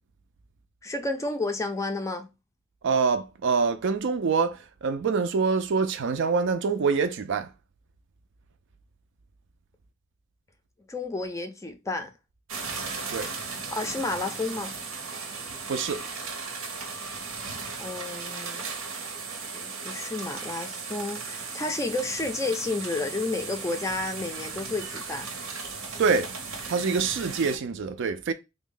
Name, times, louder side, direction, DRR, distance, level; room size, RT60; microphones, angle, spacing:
voice 1, 0.8-2.3 10.9-12.1 13.7-14.7 17.8-18.7 19.5-25.3, left 2 dB, 15° left, 0.4 m, -31 dB
voice 2, 2.8-7.5 13.1-13.3 15.7-16.0 26.0-26.3 26.7-28.3, right 5 dB, 60° right, 0.4 m, -25 dB
sound 1, 12.5-27.6, right 4 dB, 85° right, 0.9 m, -36 dB
3.5 x 2.1 x 3.7 m
head